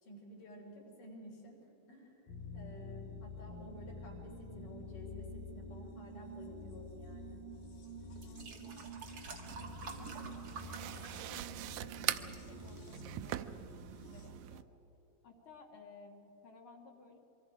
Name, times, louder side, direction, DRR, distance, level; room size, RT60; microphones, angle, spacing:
voice 1, 0.0-1.6 1.9-7.4, left 1 dB, 70° left, -2 dB, 5.5 m, -52 dB
sound 1, 2.3-14.3, left 1 dB, 90° left, 4.7 m, -48 dB
sound 2, 7.5-7.6 8.1-11.6 11.9-12.4 13.1-13.2, right 4 dB, 50° right, 2.3 m, -49 dB
voice 2, 8.2-9.0 9.6-13.7 14.0-14.7 15.2-17.2, left 4 dB, 45° left, 1 dB, 2.0 m, -57 dB
sound 3, 9.5-14.6, right 12 dB, 85° right, 1.7 m, -42 dB
26.5 x 23.5 x 4.9 m, 3.0 s
omnidirectional pair, 3.9 m